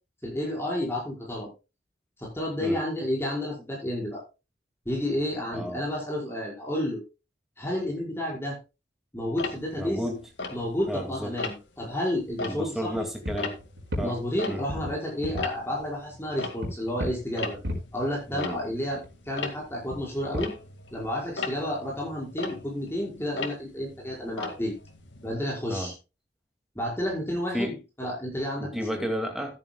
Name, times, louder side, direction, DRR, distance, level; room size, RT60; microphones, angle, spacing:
voice 1, 0.2-1.5 2.2-4.2 4.9-7.0 7.6-8.6 9.1-10.1 10.5-12.9 14.0-17.6 17.9-19.0 19.3-20.5 20.9-24.7 25.2-25.9 26.8-29.1, left 1 dB, 15° left, 5.2 m, -31 dB
voice 2, 5.5-5.9 9.8-10.2 10.9-11.4 12.5-13.6 14.0-14.2 14.5-14.6 18.3-18.6 25.7-25.9 27.5-27.8 28.5-29.6, equal, ahead, 2.3 m, -32 dB
Tick-tock, 9.4-11.0 11.4-11.8 12.2-15.0 15.2-25.3, left 3 dB, 85° left, 2.0 m, -38 dB
sound 1, 12.3-12.4 12.9-14.4 14.7-15.5 16.6-18.5 18.8-21.0, left 1 dB, 75° right, 4.7 m, -36 dB
14.0 x 10.5 x 2.3 m
head